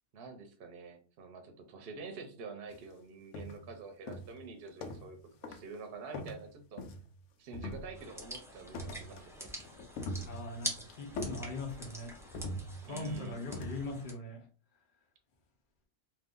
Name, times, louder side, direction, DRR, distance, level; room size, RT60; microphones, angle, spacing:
voice 1, 0.1-6.8 7.4-9.5 12.8-13.5, right 4 dB, 60° right, 5 dB, 0.8 m, -47 dB
sound 1, 2.7-2.9 3.3-3.7 4.1-5.2 5.4-5.7 6.1-7.2 7.5-8.2 8.7-9.3 9.6-10.7 11.2-11.9 12.3-13.1 13.5-13.9, left 1 dB, 90° left, 0.9 m, -42 dB
sound 2, 7.9-14.1, equal, 5° right, 0.5 m, -45 dB
voice 2, 10.2-12.1 12.8-14.5, left 2 dB, 50° left, 1 dB, 0.8 m, -40 dB
2.6 x 2.4 x 3.6 m, 0.38 s
omnidirectional pair, 1.2 m